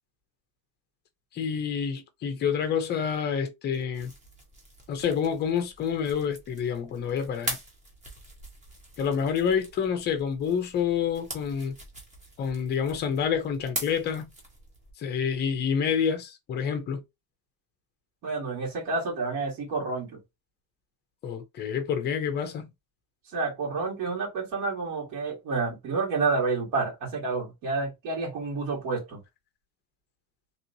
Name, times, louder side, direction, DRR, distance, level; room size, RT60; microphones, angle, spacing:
voice 1, 1.3-4.1 4.9-7.6 9.0-11.8 12.4-14.3 15.0-17.0 21.2-22.7, left 7 dB, 25° left, 0.5 m, -28 dB
sound 1, 3.7-14.9, right 1 dB, 15° right, 0.8 m, -42 dB
voice 2, 18.2-20.2 23.3-29.2, right 4 dB, 60° right, 2.0 m, -29 dB
3.0 x 2.9 x 2.6 m
cardioid pair, 175°, 44 cm